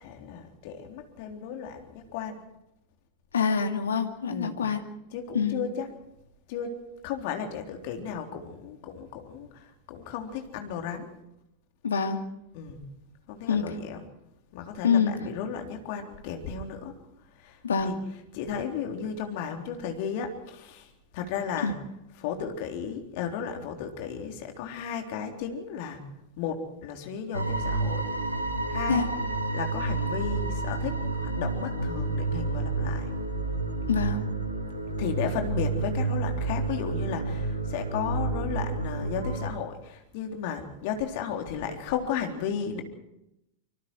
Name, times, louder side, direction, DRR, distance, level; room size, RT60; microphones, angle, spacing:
voice 1, 0.0-2.4 4.3-4.6 5.1-5.9 6.5-6.8 7.0-11.1 12.5-12.8 13.3-14.0 14.5-16.9 17.3-18.0 18.3-21.8 22.2-26.1 26.4-28.1 28.7-29.1 29.5-33.1 35.0-42.8, left 7 dB, 50° left, 4 dB, 3.6 m, -34 dB
voice 2, 3.3-4.8 5.3-5.6 11.8-12.2 13.5-13.7 14.8-15.1 17.6-17.9 21.6-21.7 28.9-29.0 33.9-34.2, left 6 dB, 70° left, 6 dB, 2.2 m, -25 dB
sound 1, 27.3-39.5, right 3 dB, 85° right, 2.8 m, -30 dB
25.5 x 25.5 x 4.7 m, 0.84 s
figure-of-eight pair, 90°, 0 cm